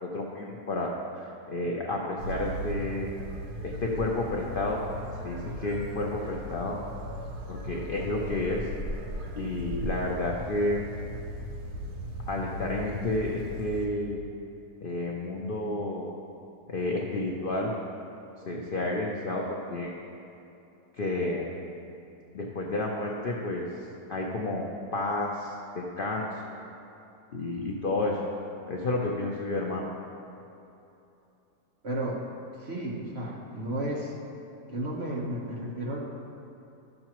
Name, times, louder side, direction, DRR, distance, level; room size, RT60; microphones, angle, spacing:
voice 1, 0.0-3.1 3.6-4.8 5.2-6.8 7.5-8.7 9.4-10.8 12.2-14.2 14.8-16.1 16.7-17.7 18.5-20.0 21.0-21.5 22.3-23.6 24.1-26.7 27.3-28.2 28.7-29.8, left 2 dB, 60° left, -1 dB, 0.5 m, -31 dB
sound 1, 2.2-13.9, equal, 80° right, 1.4 m, -37 dB
voice 2, 31.8-32.2 32.6-34.1 34.7-36.0, right 1 dB, 45° right, -3 dB, 1.2 m, -33 dB
12.0 x 6.5 x 3.0 m, 2.9 s
omnidirectional pair, 1.7 m